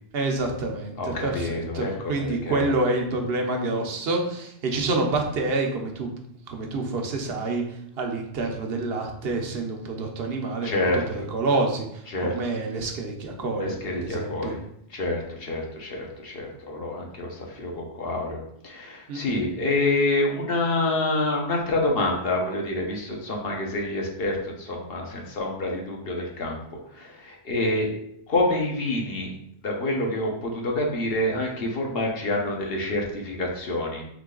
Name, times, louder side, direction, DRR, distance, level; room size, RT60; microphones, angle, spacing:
voice 1, 0.1-6.2 6.5-7.6 8.0-14.5 19.1-19.4, right 2 dB, 70° right, 2 dB, 0.9 m, -28 dB
voice 2, 1.0-2.7 10.6-11.0 12.1-12.3 13.6-14.6 14.9-26.6 26.9-27.9 28.3-29.3 29.6-34.0, left 2 dB, 70° left, 0 dB, 1.1 m, -27 dB
3.8 x 3.2 x 3.7 m, 0.74 s
omnidirectional pair, 1.1 m